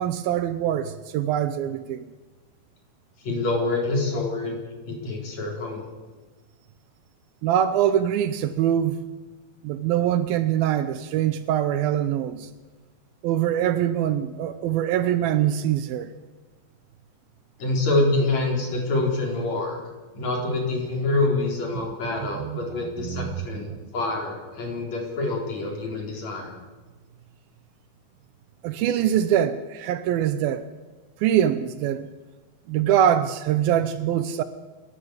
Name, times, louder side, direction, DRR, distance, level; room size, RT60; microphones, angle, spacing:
voice 1, 0.0-2.0 7.4-9.0 9.6-12.5 13.2-16.1 22.4-22.6 23.0-23.4 23.7-23.8 28.6-30.7 31.2-32.1 32.7-34.4, right 10 dB, 75° right, 2.5 m, -23 dB
voice 2, 3.2-5.9 17.6-19.8 20.1-26.5, left 2 dB, 45° left, 4.9 m, -26 dB
28.5 x 11.5 x 8.1 m
omnidirectional pair, 4.5 m